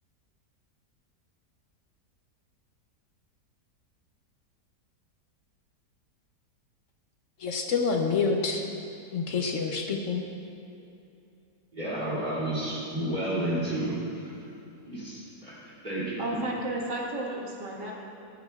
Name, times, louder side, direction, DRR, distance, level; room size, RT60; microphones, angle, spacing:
voice 1, 7.4-8.6 9.1-10.2, left 4 dB, 55° left, 2 dB, 1.0 m, -27 dB
voice 2, 11.7-14.4 14.9-16.4, right 1 dB, 25° right, -8 dB, 2.9 m, -31 dB
voice 3, 16.2-17.9, right 1 dB, 90° right, -3 dB, 2.3 m, -33 dB
15.5 x 11.5 x 2.4 m, 2.7 s
omnidirectional pair, 1.8 m